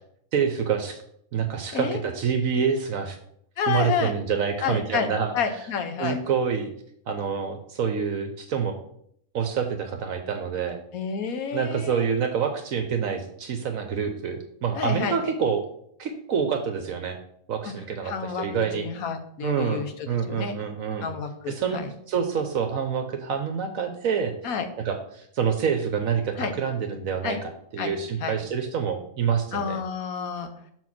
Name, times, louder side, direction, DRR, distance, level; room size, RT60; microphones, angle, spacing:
voice 1, 0.3-1.0 1.3-3.2 3.7-5.3 6.0-6.7 7.1-8.8 9.3-10.8 11.5-15.6 16.0-17.2 17.5-18.9 19.4-21.1 21.5-21.8 22.1-24.5 24.8-29.8, right 6 dB, 70° right, 6 dB, 1.1 m, -27 dB
voice 2, 3.6-4.1 4.6-6.2 10.9-12.1 14.7-15.2 17.6-17.7 18.0-20.6 21.0-21.9 24.4-24.7 26.4-26.5 27.2-27.4 27.8-27.9 28.2-28.3 29.5-30.5, left 6 dB, 75° left, 7 dB, 1.4 m, -30 dB
6.1 x 4.5 x 5.9 m, 0.69 s
omnidirectional pair, 1.5 m